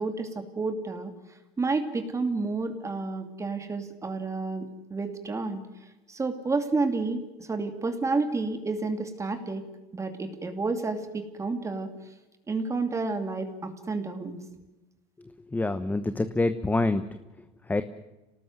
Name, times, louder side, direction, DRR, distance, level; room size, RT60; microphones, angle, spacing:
voice 1, 0.0-5.6 6.1-9.7 9.9-11.9 12.5-14.4, right 3 dB, 20° right, 7 dB, 2.6 m, -30 dB
voice 2, 15.5-17.0 17.7-17.8, left 2 dB, 10° left, 10 dB, 1.1 m, -26 dB
26.5 x 18.5 x 7.9 m, 1.0 s
supercardioid pair, 115°, 15 cm